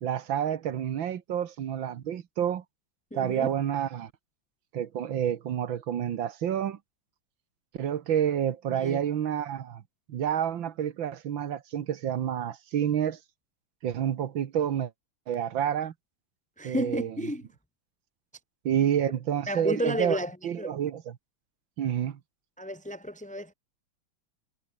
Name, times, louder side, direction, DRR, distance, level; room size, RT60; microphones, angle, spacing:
voice 1, 0.0-2.6 3.1-4.1 4.7-6.8 7.7-9.8 10.1-13.2 13.8-14.9 15.3-15.9 16.6-17.1 18.7-20.2 20.4-21.2 21.8-22.2, right 9 dB, 75° right, 2.0 m, -29 dB
voice 2, 3.1-3.5 8.7-9.0 16.6-17.5 19.5-20.7 22.6-23.5, equal, 5° left, 2.7 m, -32 dB
omnidirectional pair, 2.2 m